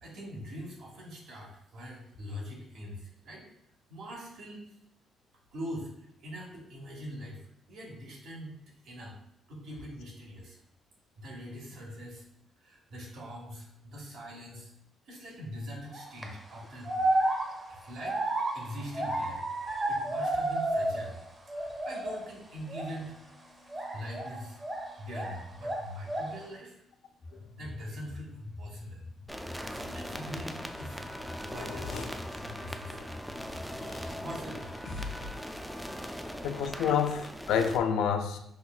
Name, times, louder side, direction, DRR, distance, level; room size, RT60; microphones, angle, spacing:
voice 1, 0.0-3.5 3.9-4.7 5.5-7.4 7.7-8.6 8.8-9.1 9.5-10.6 11.2-12.3 12.6-14.7 15.1-17.1 17.7-18.2 18.5-21.2 21.6-26.8 27.5-29.0 29.7-33.1 34.0-34.9, equal, 75° right, -2 dB, 1.1 m, -43 dB
sound 1, 15.9-16.2 16.8-21.2 21.5-22.3 22.7-22.9 23.7-25.4 25.6-26.4, right 1 dB, 20° right, 0.7 m, -31 dB
sound 2, 27.2-35.3, left 2 dB, 65° left, 0.8 m, -46 dB
sound 3, 29.3-37.8, equal, 5° right, 0.3 m, -40 dB
voice 2, 31.5-32.1 33.0-33.1 33.8-34.1 36.4-38.4, left 7 dB, 90° left, 7 dB, 0.3 m, -29 dB
5.5 x 2.2 x 2.3 m, 0.76 s
cardioid pair, 90°, 0 cm